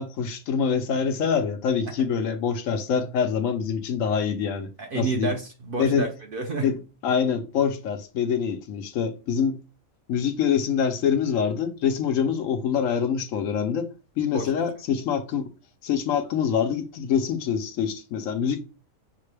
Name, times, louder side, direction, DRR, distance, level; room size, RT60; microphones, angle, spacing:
voice 1, 0.0-4.7 4.9-5.3 5.8-6.1 6.6-6.8 7.0-9.6 10.1-13.9 14.2-15.5 15.8-18.6, left 7 dB, 75° left, 1.0 m, -25 dB
voice 2, 4.8-6.7 14.3-14.4, right 4 dB, 50° right, 0.7 m, -29 dB
5.8 x 2.2 x 3.2 m
omnidirectional pair, 1.4 m